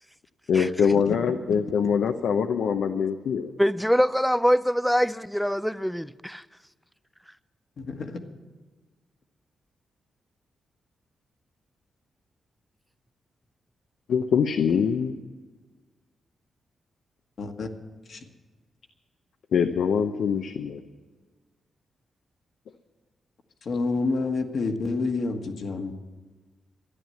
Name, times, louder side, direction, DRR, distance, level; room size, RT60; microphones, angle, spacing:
voice 1, 0.5-3.5 14.1-15.2 19.5-20.8, left 6 dB, 75° left, 0.7 m, -24 dB
voice 2, 3.6-6.4, equal, ahead, 0.4 m, -24 dB
voice 3, 7.8-8.2 17.4-17.7 18.1-18.2 23.6-25.9, left 3 dB, 55° left, 1.5 m, -28 dB
13.5 x 10.5 x 7.8 m
wide cardioid pair, 130°, 0 cm